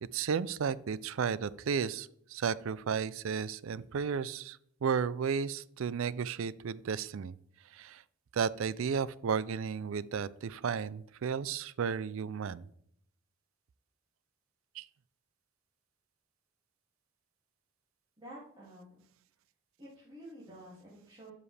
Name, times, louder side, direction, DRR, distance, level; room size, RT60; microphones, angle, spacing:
voice 1, 0.1-7.4 7.7-8.0 8.3-12.6 14.8-14.9, right 6 dB, 65° right, 18 dB, 0.4 m, -33 dB
voice 2, 18.2-19.0 19.8-21.3, right 1 dB, 20° right, -8 dB, 2.4 m, -50 dB
12.5 x 5.0 x 3.3 m, 0.69 s
head